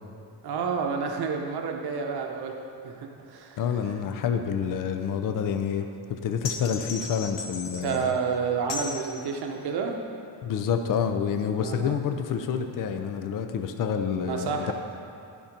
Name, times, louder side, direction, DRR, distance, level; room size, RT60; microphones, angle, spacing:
voice 1, 0.4-2.6 2.8-3.6 7.8-10.0 11.6-12.0 14.2-14.7, right 5 dB, 60° right, 3 dB, 0.9 m, -29 dB
voice 2, 3.6-8.2 10.4-14.7, left 7 dB, 50° left, 6 dB, 0.6 m, -28 dB
sound 1, 6.4-8.1 8.7-9.0, left 4 dB, 80° left, 1.1 m, -36 dB
11.5 x 4.3 x 5.2 m, 2.7 s
cardioid pair, 140°, 43 cm